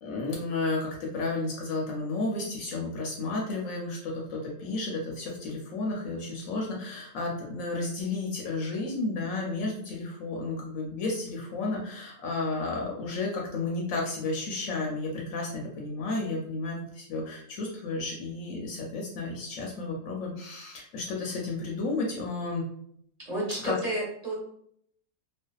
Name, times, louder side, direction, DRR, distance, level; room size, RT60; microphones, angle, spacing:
voice 1, 0.0-22.6 23.6-23.7, left 3 dB, 75° left, -2 dB, 0.9 m, -32 dB
voice 2, 23.3-24.3, right 1 dB, 30° right, -7 dB, 0.8 m, -31 dB
2.5 x 2.2 x 2.2 m, 0.68 s
omnidirectional pair, 1.5 m